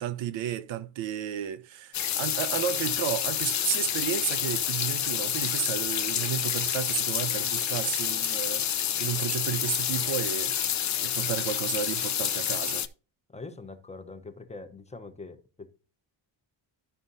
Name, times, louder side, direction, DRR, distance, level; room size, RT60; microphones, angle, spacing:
voice 1, 0.0-12.9, right 10 dB, 75° right, 0.8 m, -33 dB
sound 1, 1.9-12.9, left 9 dB, 40° left, 0.6 m, -29 dB
voice 2, 13.3-15.8, left 3 dB, 15° left, 0.9 m, -43 dB
13.0 x 5.0 x 2.7 m
cardioid pair, 120°, 46 cm